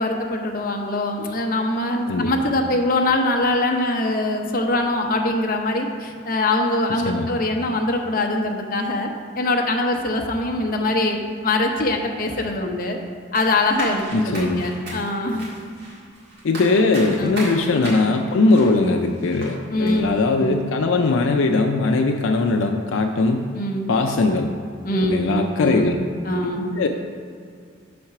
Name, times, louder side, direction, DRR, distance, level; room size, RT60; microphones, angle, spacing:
voice 1, 0.0-9.1 9.4-13.0 13.3-15.5 17.2-17.4 19.7-20.7 23.5-23.9 24.8-25.3 25.6-26.7, left 2 dB, 45° left, 2 dB, 0.7 m, -23 dB
voice 2, 6.9-7.3 14.1-14.7 16.4-23.5 23.9-24.5 25.0-26.0 26.8-26.9, left 3 dB, 75° left, 4 dB, 0.4 m, -20 dB
sound 1, 13.3-19.5 19.8-20.0, right 1 dB, 50° right, 1.8 m, -35 dB
6.5 x 4.3 x 5.8 m, 2.2 s
head